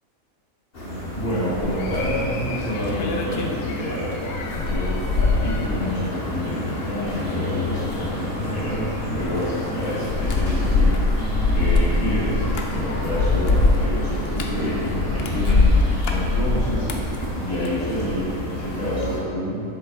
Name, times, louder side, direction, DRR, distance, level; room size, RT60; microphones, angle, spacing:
sound 1, 0.7-19.2, left 1 dB, 45° left, 1.4 m, -30 dB
voice 1, 1.1-4.1 4.6-11.0 11.5-12.4 12.7-15.6 16.1-16.9 17.4-19.6, equal, 85° left, -9 dB, 2.2 m, -28 dB
sound 2, 1.6-18.3 18.6-19.1, left 3 dB, 60° left, 0.7 m, -24 dB
8.0 x 6.5 x 2.4 m, 2.5 s
omnidirectional pair, 1.4 m